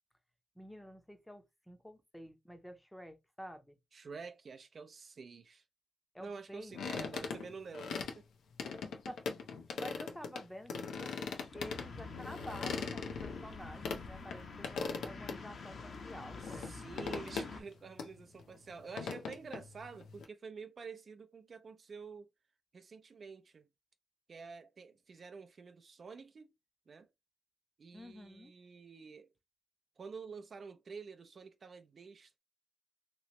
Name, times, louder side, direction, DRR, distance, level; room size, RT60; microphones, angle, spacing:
voice 1, 0.6-3.8 6.1-7.1 8.6-10.7 11.0-16.7 27.9-28.5, equal, 5° left, 0.7 m, -50 dB
voice 2, 3.9-5.6 6.2-8.2 16.4-22.3 22.7-23.7 24.3-26.5 26.9-27.1 27.8-29.3 30.0-32.4, right 5 dB, 45° right, 0.4 m, -49 dB
sound 1, 6.7-8.2 8.6-10.4 10.7-14.0 14.3-14.4 14.6-15.4 15.8-15.9 16.4-16.7 17.0-17.7 18.0-18.1 18.4-20.2, left 5 dB, 85° left, 0.6 m, -40 dB
sound 2, 11.4-17.6, left 4 dB, 50° left, 0.9 m, -47 dB
3.0 x 3.0 x 2.9 m
cardioid pair, 105°, 0 cm